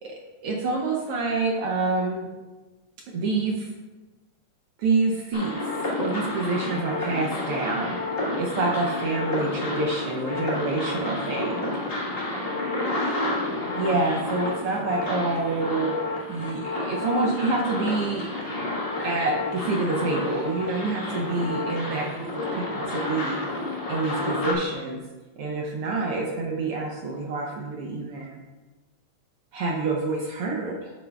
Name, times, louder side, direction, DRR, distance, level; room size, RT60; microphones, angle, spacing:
voice 1, 0.0-2.3 3.1-3.7 4.8-8.0 8.4-11.8 13.7-15.9 16.3-18.3 19.0-23.4 23.8-25.0 25.4-28.4 29.5-30.9, right 3 dB, 70° right, 0 dB, 1.4 m, -27 dB
sound 1, 5.3-24.5, left 2 dB, 35° left, 0.9 m, -30 dB
9.2 x 8.5 x 2.3 m, 1.2 s
omnidirectional pair, 3.5 m